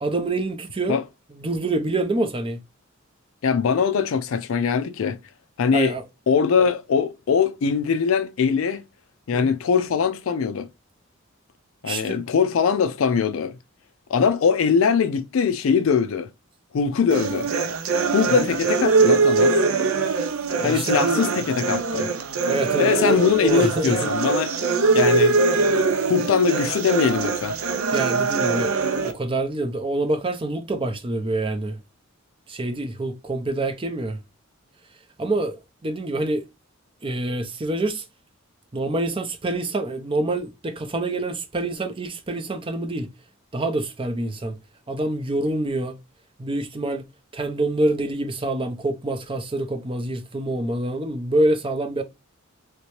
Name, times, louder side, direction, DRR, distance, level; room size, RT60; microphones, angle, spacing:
voice 1, 0.0-1.0 1.3-2.6 5.7-6.0 9.3-9.5 11.8-12.2 18.3-18.5 20.6-21.2 22.5-24.0 27.9-28.7 29.0-31.8 32.5-34.2 35.2-36.5 37.0-38.1 38.7-43.1 43.5-44.6 44.9-46.0 46.4-47.0 47.3-52.0, right 2 dB, 25° right, 0.5 m, -26 dB
voice 2, 3.4-5.2 5.6-6.0 6.3-8.8 9.3-10.7 11.8-13.6 14.1-16.3 16.7-17.5 18.1-19.6 20.6-22.1 22.8-24.6 24.9-25.4 26.1-27.6, left 6 dB, 65° left, 0.4 m, -21 dB
sound 1, 17.1-29.1, right 4 dB, 75° right, 0.6 m, -22 dB
3.2 x 2.8 x 3.0 m
head